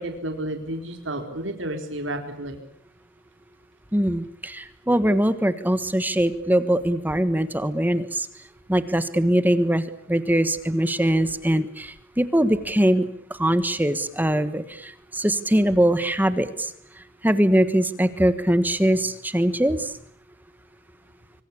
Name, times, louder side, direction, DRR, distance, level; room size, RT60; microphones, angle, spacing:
voice 1, 0.0-2.6, right 1 dB, 65° right, 5 dB, 4.1 m, -31 dB
voice 2, 3.9-8.3 8.7-16.7 17.2-19.9, right 1 dB, 10° right, 12 dB, 1.3 m, -22 dB
25.5 x 25.5 x 8.6 m, 0.65 s
head